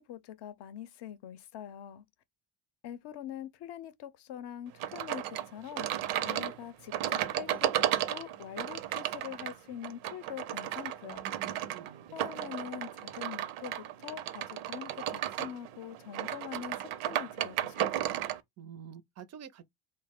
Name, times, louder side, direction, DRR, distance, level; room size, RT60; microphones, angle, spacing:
voice 1, 0.1-2.1 2.8-11.2 12.1-18.0, left 10 dB, 55° left, 0.6 m, -44 dB
sound 1, 4.8-18.4, right 12 dB, 85° right, 0.6 m, -34 dB
voice 2, 11.1-12.2 18.6-19.6, right 8 dB, 35° right, 0.4 m, -48 dB
3.2 x 2.1 x 3.4 m
cardioid pair, 105°, 49 cm